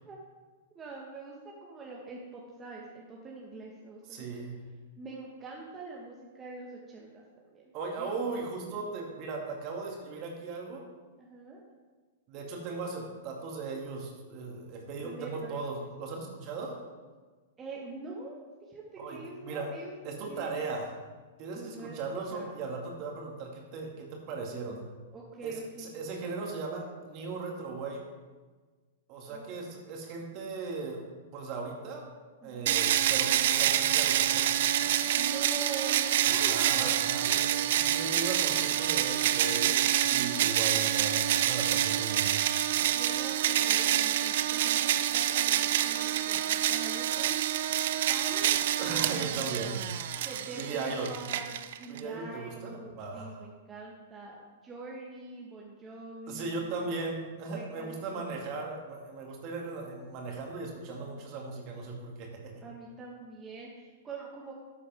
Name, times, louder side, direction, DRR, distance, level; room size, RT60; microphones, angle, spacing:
voice 1, 0.7-4.3 5.0-7.7 8.0-8.4 11.2-11.6 15.0-15.6 17.6-19.9 20.2-20.6 21.5-22.0 22.3-22.5 25.1-25.9 29.3-29.5 32.4-32.8 35.1-37.8 42.9-47.4 48.1-48.5 48.9-49.3 50.2-56.7 57.5-58.4 62.6-64.5, right 3 dB, 20° right, -3 dB, 1.6 m, -44 dB
voice 2, 4.1-4.6 7.7-10.8 12.3-16.8 19.0-19.7 20.0-20.9 21.4-24.8 25.4-28.0 29.1-31.0 31.3-32.1 32.4-34.6 36.2-37.3 37.6-42.4 48.8-50.0 50.5-51.2 51.9-53.5 56.3-62.6, right 3 dB, 40° right, 0 dB, 2.5 m, -37 dB
sound 1, 32.7-52.0, right 11 dB, 55° right, 0.5 m, -27 dB
13.0 x 8.3 x 3.6 m, 1.4 s
figure-of-eight pair, 100°, 0 cm